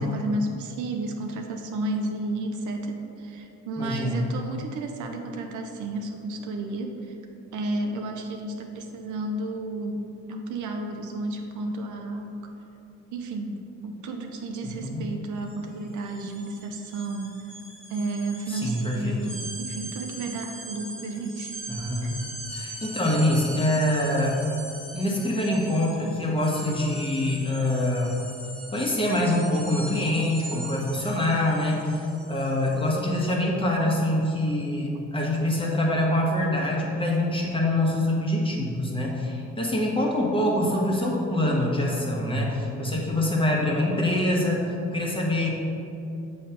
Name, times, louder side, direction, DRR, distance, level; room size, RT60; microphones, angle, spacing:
voice 1, 0.0-7.2 7.5-12.5 13.1-17.4 17.9-21.6 22.0-22.1, right 2 dB, 80° right, 3 dB, 0.8 m, -32 dB
voice 2, 3.8-4.2 14.8-15.1 18.5-19.2 21.7-22.2 22.5-24.4 24.9-28.2 28.7-44.6 44.9-45.5, left 1 dB, 15° left, -3 dB, 1.4 m, -25 dB
sound 1, 15.4-15.6 15.9-33.1, right 1 dB, ahead, 1.3 m, -41 dB
7.2 x 3.2 x 5.8 m, 2.8 s
cardioid pair, 90°, 30 cm